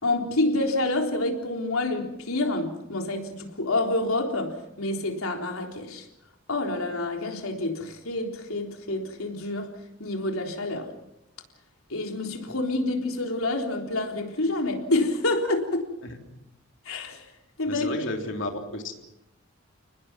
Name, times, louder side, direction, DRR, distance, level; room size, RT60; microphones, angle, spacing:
voice 1, 0.0-6.0 6.5-9.7 10.0-10.9 11.9-15.9 16.9-17.3 17.6-17.9, left 2 dB, 85° left, 3.7 m, -28 dB
voice 2, 17.7-18.9, left 2 dB, 60° left, 3.5 m, -32 dB
30.0 x 20.0 x 6.1 m
head